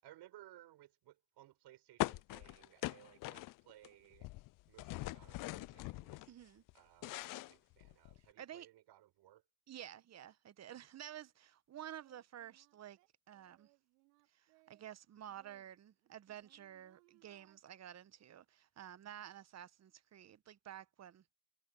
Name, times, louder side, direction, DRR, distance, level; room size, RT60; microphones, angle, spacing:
voice 1, 0.0-4.3 4.7-6.3 6.7-9.4, right 14 dB, 60° right, 5.2 m, -61 dB
sound 1, 2.0-3.9 4.1-6.3 6.7-8.2, left 19 dB, 45° left, 0.5 m, -42 dB
voice 2, 6.3-6.6 8.4-8.7 9.7-13.0 13.3-13.7 14.4-21.3, right 11 dB, 35° right, 1.0 m, -52 dB
Singing, 11.7-14.9 15.3-17.6, right 28 dB, 90° right, 3.3 m, -71 dB
supercardioid pair, 100°, 46 cm